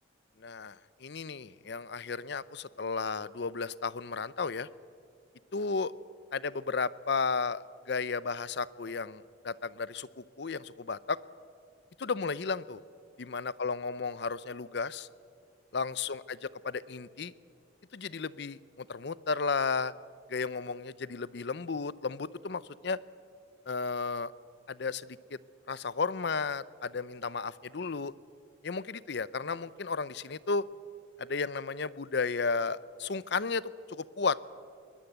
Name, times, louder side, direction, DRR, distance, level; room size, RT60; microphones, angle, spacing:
voice 1, 0.4-4.7 5.5-5.9 6.3-11.2 12.0-12.8 13.2-15.1 15.7-16.4 16.6-17.3 17.9-19.9 20.3-23.0 23.7-24.3 24.7-25.2 25.7-28.1 28.6-30.6 31.2-34.4, left 4 dB, 60° left, 18 dB, 0.6 m, -33 dB
21.5 x 20.0 x 8.0 m, 2.3 s
head